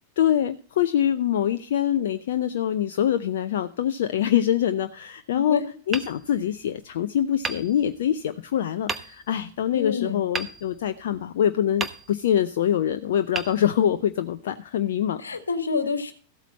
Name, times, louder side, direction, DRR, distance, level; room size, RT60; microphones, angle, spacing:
voice 1, 0.2-15.2, left 10 dB, 60° left, 10 dB, 0.6 m, -24 dB
Hammer, 5.9-6.9 7.4-8.3 8.9-9.5 10.3-11.3 11.8-12.5 13.3-14.3, right 4 dB, 15° right, 1.0 m, -35 dB
voice 2, 9.7-10.2 15.2-16.1, left 5 dB, 75° left, 9 dB, 1.5 m, -27 dB
14.5 x 8.2 x 4.1 m, 0.42 s
figure-of-eight pair, 90°, 0 cm